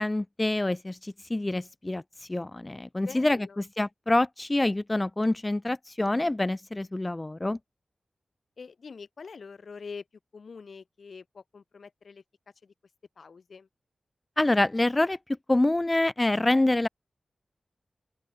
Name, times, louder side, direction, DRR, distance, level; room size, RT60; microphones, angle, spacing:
voice 1, 0.0-7.6 14.4-15.2 15.5-16.9, left 2 dB, 25° left, 0.9 m, -26 dB
voice 2, 3.1-3.6 8.6-10.0 10.3-12.2 12.6-12.7 13.2-13.7, left 5 dB, 75° left, 5.5 m, -44 dB
open air
wide cardioid pair, 70°, 0 cm